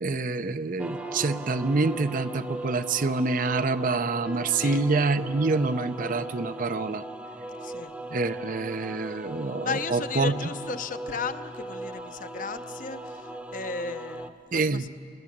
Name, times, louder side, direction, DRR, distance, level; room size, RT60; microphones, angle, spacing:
voice 1, 0.0-7.0 8.1-10.5 14.5-14.8, right 3 dB, 45° right, 12 dB, 0.6 m, -26 dB
sound 1, 0.8-14.3, right 1 dB, 10° right, 0.9 m, -38 dB
voice 2, 4.5-4.8 7.6-7.9 9.6-13.2 13.5-14.9, left 4 dB, 45° left, 10 dB, 0.7 m, -35 dB
29.0 x 20.5 x 7.3 m, 2.3 s
head